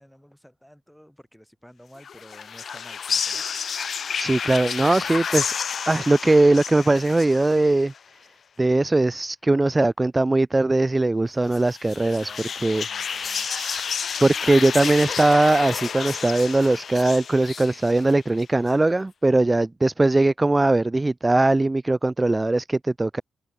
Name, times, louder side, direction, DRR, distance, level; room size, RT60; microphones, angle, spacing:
voice 1, 0.0-3.5 12.2-13.5, equal, ahead, 3.7 m, -50 dB
sound 1, 2.0-8.0 11.5-18.4, left 7 dB, 55° left, 0.5 m, -30 dB
voice 2, 4.2-5.5 5.9-7.9 8.6-23.2, right 2 dB, 15° right, 0.3 m, -20 dB
cardioid pair, 105°, 0 cm